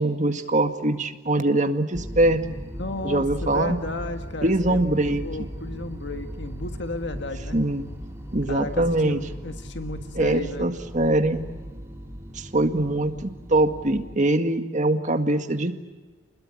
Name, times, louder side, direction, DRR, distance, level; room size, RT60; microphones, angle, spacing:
voice 1, 0.0-2.6 3.0-3.8 4.4-5.2 7.5-7.8 8.3-9.2 10.2-11.4 12.3-15.7, right 1 dB, 40° right, 7 dB, 1.9 m, -23 dB
sound 1, 1.9-14.2, equal, 15° right, 3.1 m, -37 dB
voice 2, 2.8-7.6 8.5-10.7, left 2 dB, 65° left, 7 dB, 1.7 m, -34 dB
30.0 x 21.0 x 8.6 m, 1.3 s
head